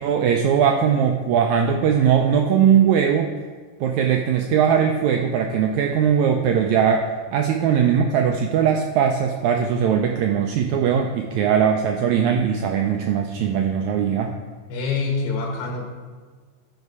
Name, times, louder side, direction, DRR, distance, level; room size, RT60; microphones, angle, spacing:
voice 1, 0.0-3.3 3.8-14.3, right 8 dB, 90° right, 3 dB, 1.6 m, -20 dB
voice 2, 14.7-15.9, left 4 dB, 85° left, -1 dB, 2.9 m, -25 dB
13.0 x 5.4 x 4.7 m, 1.5 s
omnidirectional pair, 3.9 m